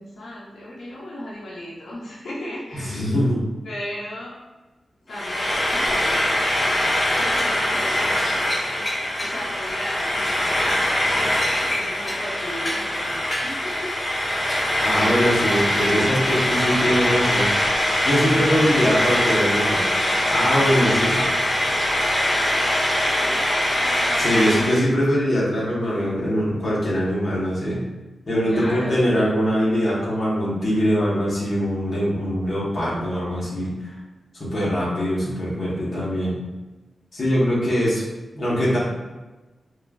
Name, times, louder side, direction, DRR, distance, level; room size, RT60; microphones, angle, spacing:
voice 1, 0.0-3.0 3.6-4.4 5.1-6.4 7.1-8.8 9.2-13.9 14.4-14.8 18.3-19.6 20.5-21.1 23.2-23.5 28.4-29.1, left 1 dB, 90° left, -6 dB, 0.6 m, -35 dB
voice 2, 2.8-3.4 14.8-17.5 18.0-19.8 20.3-21.1 24.2-27.8 28.3-34.0 34.3-36.4 37.1-38.0 38.3-38.8, equal, 45° left, -7 dB, 0.9 m, -22 dB
Frying (food), 5.1-24.8, left 1 dB, 25° left, 0.4 m, -22 dB
3.0 x 2.3 x 2.2 m, 1.1 s
wide cardioid pair, 140°, 0 cm